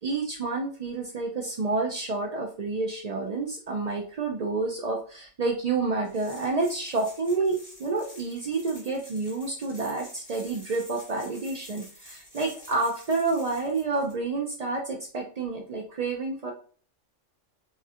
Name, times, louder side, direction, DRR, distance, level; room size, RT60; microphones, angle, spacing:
voice 1, 0.0-16.5, right 3 dB, 70° right, 1 dB, 0.3 m, -29 dB
sound 1, 6.0-14.1, left 1 dB, 15° left, 0.9 m, -49 dB
3.1 x 2.9 x 2.3 m, 0.42 s
omnidirectional pair, 1.3 m